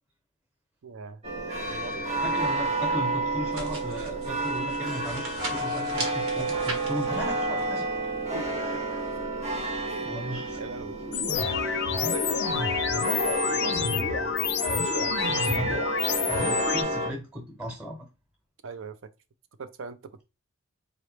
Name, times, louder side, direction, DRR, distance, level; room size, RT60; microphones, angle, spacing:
voice 1, 0.8-1.2 1.7-2.3 8.0-8.1 8.3-8.8 9.9-10.2 10.6-12.4 12.9-14.5 14.8-15.3 18.6-19.0 19.6-20.2, right 5 dB, 60° right, 0.5 m, -40 dB
sound 1, 1.2-17.1, right 1 dB, 30° right, 0.8 m, -30 dB
voice 2, 2.2-7.9 10.0-10.6 11.1-11.2 15.3-15.9 16.2-18.1, equal, 5° right, 1.0 m, -36 dB
sound 2, 3.5-9.2, right 2 dB, 80° right, 1.4 m, -40 dB
sound 3, 11.1-16.8, left 7 dB, 50° left, 0.5 m, -28 dB
3.8 x 3.0 x 3.1 m
head